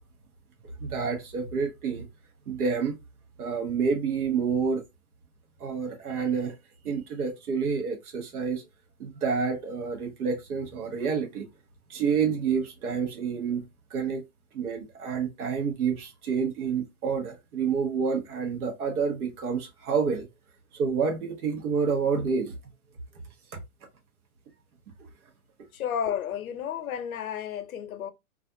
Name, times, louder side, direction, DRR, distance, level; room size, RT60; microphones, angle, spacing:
voice 1, 0.8-2.1 2.5-3.0 3.4-4.8 5.6-6.5 6.8-8.6 9.0-11.5 11.9-13.6 13.9-14.2 14.5-20.3 20.7-22.5, right 5 dB, 85° right, 1.0 m, -28 dB
voice 2, 25.7-28.1, left 8 dB, 70° left, 0.7 m, -32 dB
2.4 x 2.4 x 2.5 m
hypercardioid pair, 130°, 43 cm